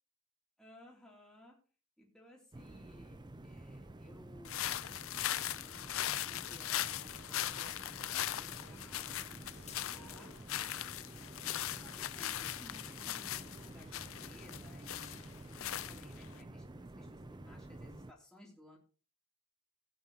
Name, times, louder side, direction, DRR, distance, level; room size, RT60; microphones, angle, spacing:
voice 1, 0.6-1.6 2.0-5.0 5.6-11.4 11.8-16.6 17.0-18.8, left 1 dB, 5° left, -3 dB, 3.1 m, -59 dB
sound 1, 2.5-18.1, right 1 dB, 20° right, 0.5 m, -51 dB
sound 2, 4.4-16.4, left 12 dB, 65° left, 0.5 m, -39 dB
sound 3, 8.4-11.0 11.3-12.8 13.2-13.8 14.1-15.6, left 8 dB, 30° left, 1.7 m, -62 dB
16.5 x 9.4 x 3.0 m, 0.37 s
head